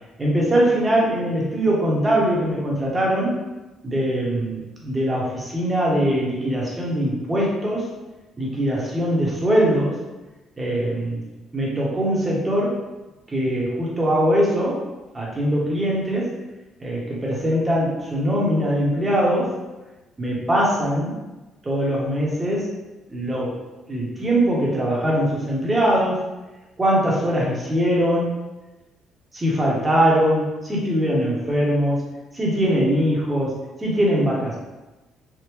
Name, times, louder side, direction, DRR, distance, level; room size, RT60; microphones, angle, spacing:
voice 1, 0.2-3.3 3.8-7.9 8.4-10.0 10.6-11.2 11.5-12.8 13.3-14.8 15.1-16.4 16.8-19.5 20.2-21.1 21.6-22.7 23.1-23.6 23.9-26.2 26.8-28.3 29.3-32.0 32.3-34.6, equal, 20° right, -4 dB, 0.9 m, -21 dB
3.5 x 2.1 x 3.0 m, 1.1 s
cardioid pair, 100°, 0 cm